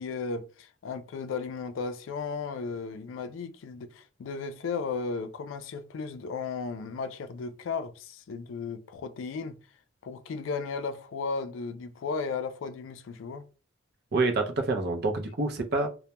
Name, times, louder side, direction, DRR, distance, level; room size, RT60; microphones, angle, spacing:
voice 1, 0.0-9.6 10.0-13.5, left 4 dB, 75° left, 0.3 m, -35 dB
voice 2, 14.1-15.9, right 3 dB, 55° right, 0.5 m, -27 dB
2.2 x 2.1 x 2.8 m
head